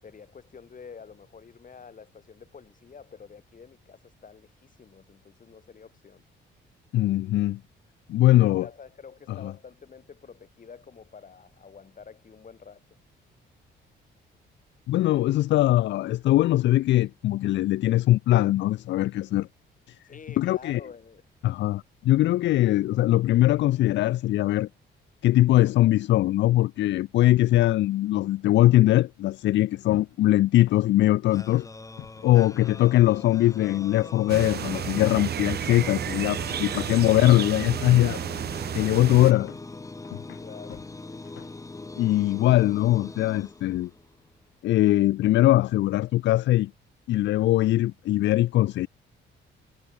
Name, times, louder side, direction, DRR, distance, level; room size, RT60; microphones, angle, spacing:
voice 1, 0.0-6.2 8.3-13.0 20.0-21.2 36.5-37.3 40.4-40.9, left 6 dB, 40° left, 7.5 m, -48 dB
voice 2, 6.9-7.6 8.1-8.7 9.3-9.5 14.9-19.5 19.9-20.0 20.4-20.8 21.4-24.7 25.2-31.7 32.2-38.2 38.7-39.5 42.0-43.9 44.6-46.7 47.1-48.9, left 15 dB, 65° left, 0.4 m, -21 dB
sound 1, 29.6-42.9, left 14 dB, 80° left, 2.2 m, -48 dB
sound 2, 31.3-44.2, left 3 dB, 15° left, 1.5 m, -41 dB
sound 3, 34.3-39.3, right 10 dB, 55° right, 0.8 m, -32 dB
cardioid pair, 90°, 20 cm